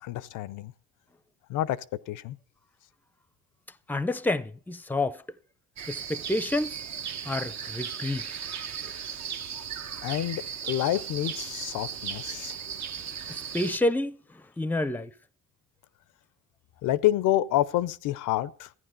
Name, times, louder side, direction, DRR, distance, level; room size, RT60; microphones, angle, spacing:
voice 1, 0.0-0.7 1.5-2.4 10.0-12.6 16.8-18.7, left 13 dB, 85° left, 0.6 m, -28 dB
voice 2, 3.9-5.2 5.9-6.8 7.2-8.3 13.3-15.1, left 2 dB, 5° left, 0.5 m, -29 dB
sound 1, 5.8-13.8, right 7 dB, 65° right, 1.1 m, -36 dB
14.0 x 9.7 x 5.2 m
cardioid pair, 90°, 30 cm